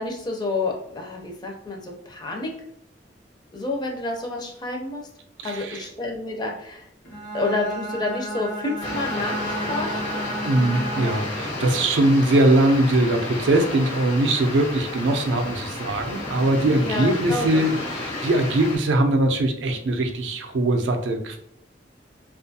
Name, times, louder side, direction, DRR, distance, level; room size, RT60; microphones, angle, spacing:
voice 1, 0.0-2.5 3.5-5.0 5.4-6.9 7.3-10.1 16.8-17.6, left 2 dB, 25° left, 1 dB, 0.4 m, -29 dB
voice 2, 5.4-5.9 10.4-21.4, right 1 dB, 80° right, 4 dB, 0.4 m, -21 dB
Bowed string instrument, 7.0-11.5, right 1 dB, 70° left, 0.8 m, -32 dB
sound 1, 8.8-18.8, left 2 dB, 85° left, 1.1 m, -32 dB
2.5 x 2.3 x 2.6 m, 0.72 s
head